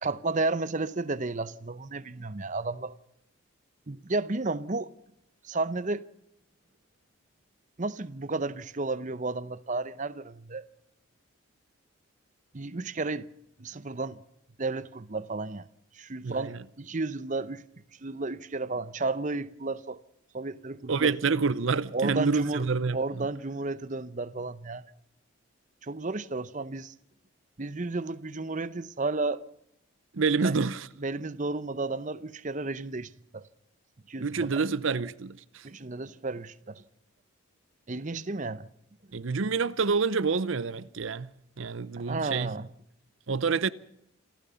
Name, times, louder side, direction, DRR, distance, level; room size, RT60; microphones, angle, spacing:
voice 1, 0.0-3.0 3.9-4.9 5.4-6.0 7.8-10.7 12.5-13.3 13.6-14.2 14.6-15.7 15.9-17.6 18.0-20.0 20.3-21.1 21.9-22.7 22.9-24.8 25.8-26.9 27.6-29.4 30.4-30.5 31.0-33.5 34.1-34.6 35.6-36.8 37.9-38.7 42.0-42.7, right 3 dB, 35° right, 0.7 m, -32 dB
voice 2, 16.2-16.6 20.9-23.3 30.1-30.9 34.2-35.7 39.1-41.3 41.6-42.5 43.3-43.7, right 4 dB, 65° right, 0.7 m, -28 dB
27.5 x 13.5 x 6.9 m
head